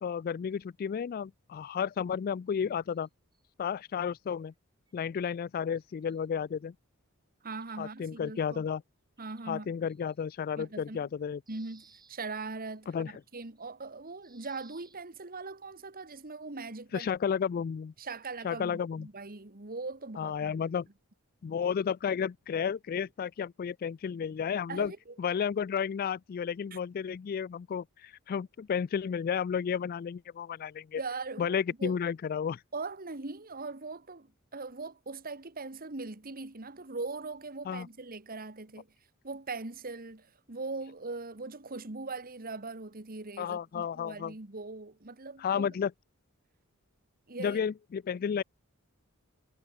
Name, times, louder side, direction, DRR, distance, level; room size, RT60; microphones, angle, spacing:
voice 1, 0.0-3.1 3.6-4.5 4.9-6.7 7.8-8.8 9.5-11.4 12.9-13.1 16.9-17.9 18.4-19.1 20.2-20.9 21.4-24.9 25.2-31.0 31.4-32.6 37.7-37.9 43.4-44.3 45.4-45.9 47.4-48.4, left 7 dB, 45° left, 0.3 m, -32 dB
sound 1, 2.9-3.4 4.5-4.6 4.9-5.0 5.8-6.4 7.6-8.1 9.2-9.4 9.9-10.2 10.8-10.9 11.5-13.9 14.2-15.0, right 5 dB, 20° right, 5.8 m, -62 dB
voice 2, 7.4-8.6 9.2-9.7 10.6-11.1 11.5-17.1 18.0-20.6 24.7-25.2 26.7-26.8 31.0-32.0 32.7-38.9 39.2-45.7 47.3-47.6, right 3 dB, 40° right, 1.7 m, -41 dB
head